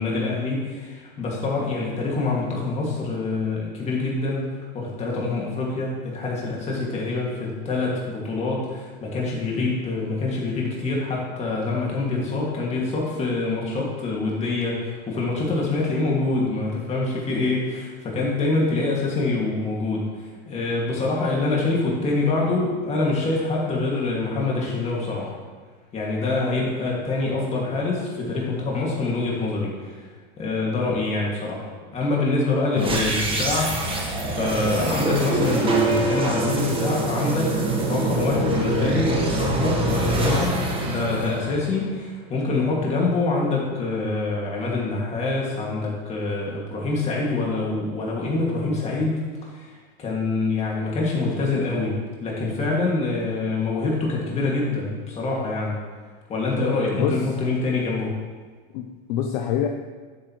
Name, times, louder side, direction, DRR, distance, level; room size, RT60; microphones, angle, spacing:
voice 1, 0.0-25.4 25.9-30.0 30.4-40.6 40.8-49.2 49.5-55.8 56.3-58.1, left 3 dB, 20° left, -3 dB, 2.3 m, -25 dB
sound 1, 32.8-42.0, right 2 dB, 15° right, 1.4 m, -24 dB
voice 2, 56.9-57.2 58.7-59.7, left 9 dB, 50° left, 4 dB, 0.7 m, -26 dB
11.0 x 8.7 x 3.2 m, 1.5 s
supercardioid pair, 155°, 31 cm